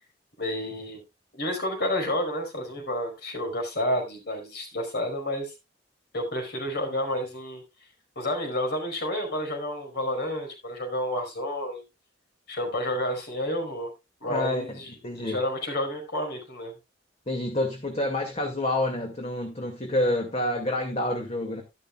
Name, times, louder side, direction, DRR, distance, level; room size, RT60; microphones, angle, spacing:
voice 1, 0.4-1.0 1.3-5.5 6.1-7.6 8.1-11.8 12.5-13.9 14.2-16.7, left 1 dB, 60° left, 4.9 m, -30 dB
voice 2, 14.3-15.4 17.3-21.6, left 1 dB, 35° left, 2.2 m, -28 dB
12.0 x 12.0 x 2.3 m
head